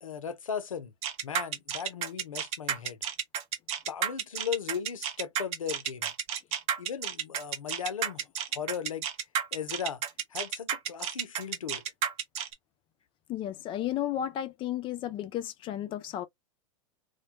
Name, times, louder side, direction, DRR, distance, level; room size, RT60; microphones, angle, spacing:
voice 1, 0.0-0.9 1.2-3.0 3.9-6.1 6.8-8.2 8.5-9.1 9.5-10.0 10.3-11.8, left 7 dB, 90° left, 0.6 m, -37 dB
sound 1, 1.0-12.5, right 9 dB, 40° right, 0.6 m, -31 dB
voice 2, 13.3-16.3, left 11 dB, 30° left, 0.4 m, -33 dB
2.2 x 2.1 x 2.7 m
hypercardioid pair, 100°, 17 cm